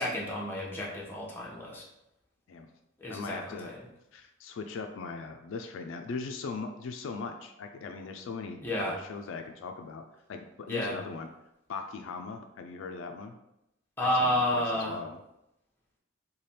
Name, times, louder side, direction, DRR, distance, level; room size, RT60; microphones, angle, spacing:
voice 1, 0.0-1.8 3.0-3.8 8.6-9.0 10.7-11.0 14.0-15.0, left 1 dB, 10° left, -4 dB, 0.8 m, -30 dB
voice 2, 3.1-3.7 4.1-10.0 10.3-11.3 11.7-13.3 14.2-15.2, left 4 dB, 70° left, 5 dB, 0.3 m, -39 dB
3.3 x 2.2 x 4.1 m, 0.86 s
head